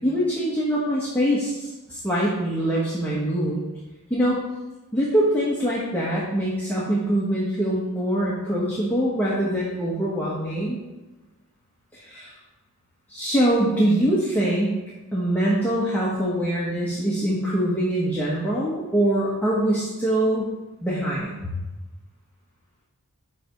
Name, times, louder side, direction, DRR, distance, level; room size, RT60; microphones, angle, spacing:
voice 1, 0.0-3.6 4.1-4.4 4.9-10.8 11.9-12.3 13.1-14.8 15.1-20.5 20.8-21.3, right 1 dB, 10° left, -8 dB, 1.2 m, -23 dB
9.8 x 3.4 x 5.2 m, 1.1 s
head